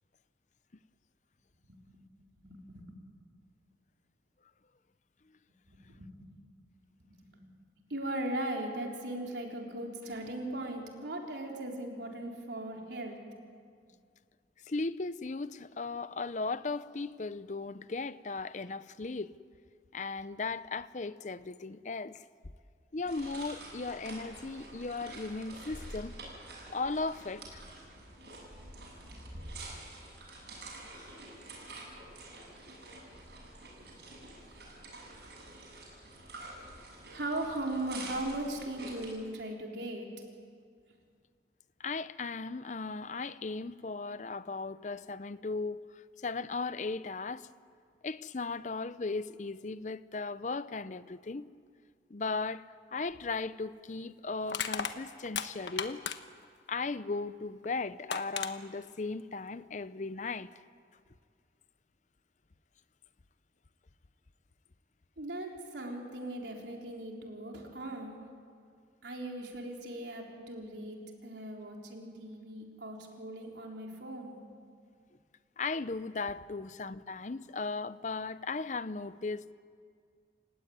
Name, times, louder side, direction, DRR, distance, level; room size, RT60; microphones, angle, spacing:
voice 1, 1.7-2.0 2.4-3.0 5.7-6.3 7.0-7.5 7.9-13.2 37.1-40.1 65.2-68.2 69.0-74.4, right 1 dB, 80° right, 3.8 m, -39 dB
voice 2, 14.7-19.3 19.9-22.2 22.9-26.1 26.7-27.6 41.8-47.5 48.0-51.5 52.1-56.0 56.7-60.5 75.6-79.5, left 3 dB, 45° left, 0.6 m, -37 dB
sound 1, 23.0-39.1, right 2 dB, 65° right, 7.6 m, -47 dB
Crushing, 53.1-53.3 54.5-56.4 57.6-57.7 58.1-58.5, left 7 dB, 85° left, 1.2 m, -35 dB
28.5 x 16.5 x 9.4 m
head